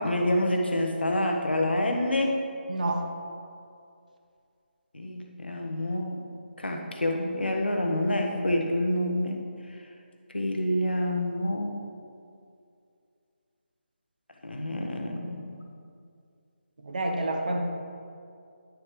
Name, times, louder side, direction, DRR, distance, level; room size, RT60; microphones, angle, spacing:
voice 1, 0.0-2.4 4.9-6.2 6.6-9.5 10.3-11.8 14.4-15.6, left 1 dB, 65° left, 2 dB, 1.2 m, -27 dB
voice 2, 2.7-3.1 16.8-17.6, right 2 dB, 45° right, 2 dB, 1.0 m, -28 dB
11.0 x 6.9 x 3.3 m, 2.4 s
figure-of-eight pair, 155°, 6 cm